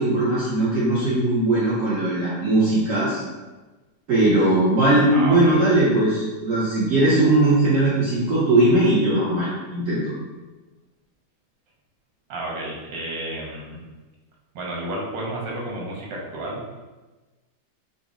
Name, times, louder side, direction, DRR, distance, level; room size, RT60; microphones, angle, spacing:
voice 1, 0.0-3.2 4.1-10.0, right 2 dB, 55° right, -8 dB, 1.0 m, -19 dB
voice 2, 5.1-5.6 12.3-13.8 14.5-16.8, right 1 dB, 90° right, -2 dB, 1.5 m, -31 dB
4.0 x 2.1 x 3.5 m, 1.2 s
omnidirectional pair, 2.0 m